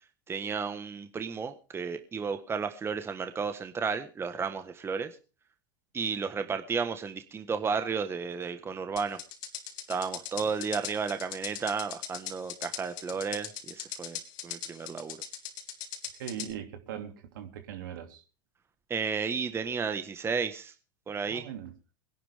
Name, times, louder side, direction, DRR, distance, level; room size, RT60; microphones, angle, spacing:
voice 1, 0.3-5.2 5.9-9.2 9.9-15.2 18.9-20.7 21.1-21.4, right 5 dB, 20° right, 8 dB, 1.5 m, -33 dB
sound 1, 9.0-16.5, left 10 dB, 70° left, 2.8 m, -39 dB
voice 2, 16.2-18.2 21.3-21.7, right 9 dB, 75° right, 6 dB, 2.8 m, -40 dB
22.0 x 11.0 x 3.6 m, 0.34 s
hypercardioid pair, 95°, 11 cm